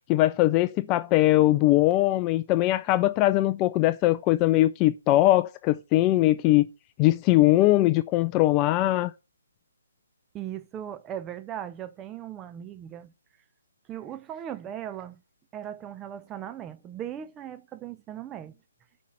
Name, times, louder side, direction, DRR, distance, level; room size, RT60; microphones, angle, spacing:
voice 1, 0.1-6.7 7.0-9.1, left 16 dB, 25° left, 0.4 m, -21 dB
voice 2, 10.3-13.1 13.9-15.2 15.5-18.6, right 10 dB, 15° right, 0.8 m, -38 dB
8.3 x 5.4 x 7.7 m
figure-of-eight pair, 140°, 0 cm